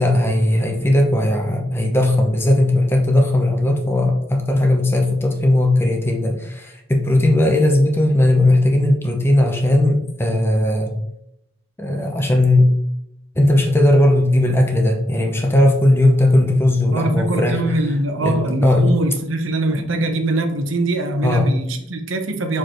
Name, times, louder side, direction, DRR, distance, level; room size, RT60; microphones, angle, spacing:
voice 1, 0.0-10.9 11.8-12.7 13.4-17.6 18.2-18.9 19.7-20.1 21.2-21.5, left 1 dB, 10° left, 2 dB, 0.7 m, -17 dB
voice 2, 16.9-22.6, right 2 dB, 80° right, 5 dB, 0.9 m, -22 dB
6.6 x 4.7 x 3.0 m, 0.80 s
head